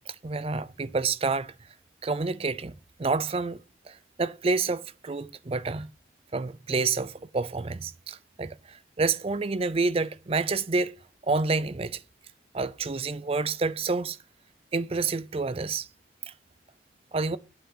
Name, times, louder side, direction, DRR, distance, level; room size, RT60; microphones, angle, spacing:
voice 1, 0.1-1.5 2.0-2.7 3.0-3.6 3.9-5.9 6.3-11.0 11.3-12.0 12.5-14.2 14.7-15.9 17.1-17.4, right 4 dB, 30° right, 0.5 m, -28 dB
8.9 x 7.3 x 5.4 m
head